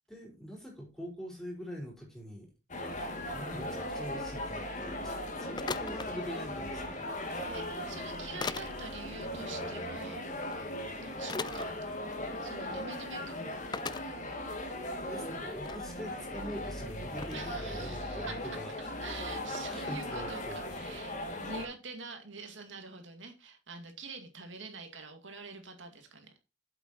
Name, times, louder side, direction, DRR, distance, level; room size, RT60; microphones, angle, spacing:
voice 1, 0.1-2.5 3.3-7.1 15.0-18.9 19.7-20.6, equal, 5° left, -2 dB, 4.7 m, -44 dB
sound 1, 2.7-21.6, left 1 dB, 45° left, 2.3 m, -38 dB
sound 2, 5.6-6.1 7.5-7.6 8.4-8.7 10.4-10.5 11.3-11.7 12.5-12.7 13.0-13.1 13.7-14.0 14.7-14.8 15.2-15.8 16.5-16.6 17.2-17.5 19.5-19.6, left 5 dB, 25° left, 0.4 m, -38 dB
voice 2, 7.3-10.2 11.0-11.7 12.4-13.5 17.3-18.6 19.0-26.4, right 4 dB, 90° right, 5 dB, 2.3 m, -46 dB
8.1 x 7.9 x 4.4 m, 0.30 s
head